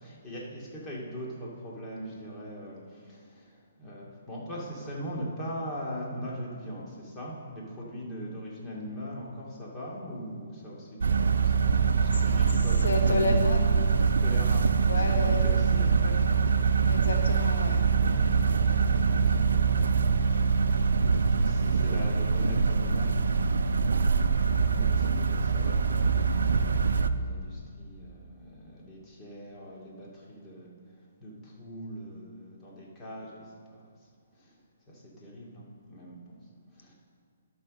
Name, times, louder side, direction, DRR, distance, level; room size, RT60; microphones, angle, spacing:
voice 1, 0.0-11.7 12.0-13.4 14.0-16.3 21.2-23.8 24.6-34.6 34.9-36.9, equal, 20° left, -5 dB, 2.4 m, -41 dB
sound 1, 11.0-27.1, right 5 dB, 85° right, 0.5 m, -24 dB
voice 2, 12.8-13.8 14.9-15.5 16.9-17.8, left 2 dB, 90° left, 4 dB, 1.1 m, -30 dB
11.5 x 5.9 x 6.4 m, 2.1 s
hypercardioid pair, 150°, 0 cm